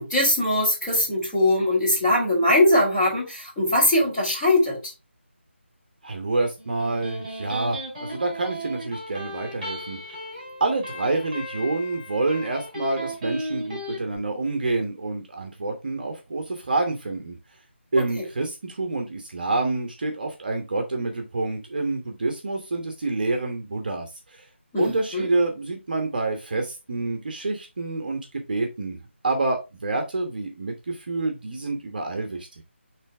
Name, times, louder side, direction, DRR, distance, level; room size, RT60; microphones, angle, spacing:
voice 1, 0.0-4.9 24.7-25.3, left 1 dB, 10° left, 3.1 m, -21 dB
voice 2, 6.0-10.0 10.6-17.4 17.9-24.5 24.8-32.5, right 2 dB, 45° right, 1.2 m, -27 dB
Electric guitar, 6.6-14.0, equal, 15° right, 3.8 m, -36 dB
8.1 x 3.4 x 3.4 m
figure-of-eight pair, 170°, 7 cm